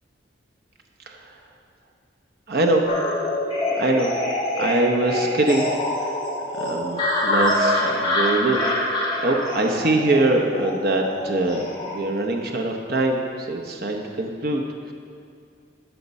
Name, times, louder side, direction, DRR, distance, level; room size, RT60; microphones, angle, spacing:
voice 1, 2.5-2.9 3.7-4.1 4.6-5.7 6.0-6.2 6.5-8.6 9.2-14.6, right 2 dB, 60° right, 2 dB, 0.8 m, -23 dB
sound 1, 2.9-12.0, left 1 dB, 30° left, 2.7 m, -25 dB
12.0 x 5.8 x 5.4 m, 2.3 s
head